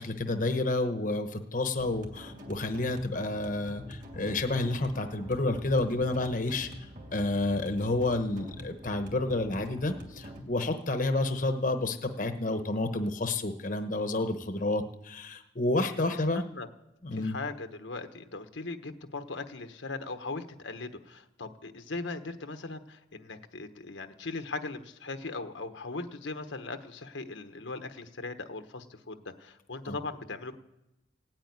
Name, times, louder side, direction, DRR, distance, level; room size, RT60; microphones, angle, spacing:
voice 1, 0.0-16.4 17.0-17.4 29.9-30.0, left 2 dB, 45° left, 7 dB, 1.0 m, -30 dB
sound 1, 1.8-10.4, equal, 45° right, 2.5 m, -45 dB
voice 2, 16.3-16.7 17.1-30.5, left 3 dB, 80° left, 7 dB, 1.1 m, -39 dB
16.5 x 9.0 x 9.6 m, 0.93 s
head